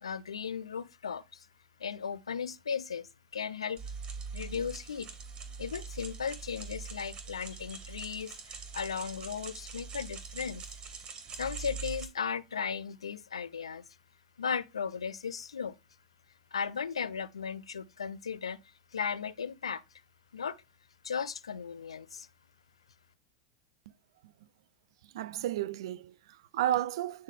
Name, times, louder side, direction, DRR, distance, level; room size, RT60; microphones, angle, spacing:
voice 1, 0.0-1.5 1.8-3.8 4.3-5.1 5.6-10.6 11.3-13.9 14.4-15.8 16.5-18.6 18.9-19.8 20.3-20.6 21.0-22.3, left 6 dB, 90° left, 0.5 m, -36 dB
sound 1, 3.8-12.1, right 5 dB, 35° right, 2.2 m, -43 dB
voice 2, 25.1-27.2, right 12 dB, 65° right, 0.4 m, -32 dB
9.8 x 3.6 x 3.7 m
hypercardioid pair, 100°, 3 cm